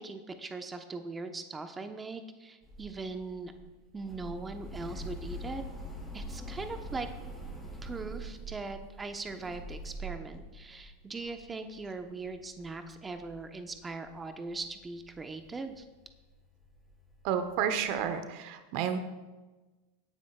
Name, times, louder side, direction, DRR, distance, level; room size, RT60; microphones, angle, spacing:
voice 1, 0.0-3.5 3.9-5.6 6.1-7.1 7.8-15.8, right 3 dB, 20° right, 7 dB, 1.1 m, -40 dB
sound 1, 2.6-14.2 14.5-18.2, right 1 dB, ahead, 4.3 m, -44 dB
voice 2, 17.2-19.0, right 8 dB, 55° right, 9 dB, 1.0 m, -31 dB
18.5 x 9.6 x 2.4 m, 1.2 s
hypercardioid pair, 90°, 0 cm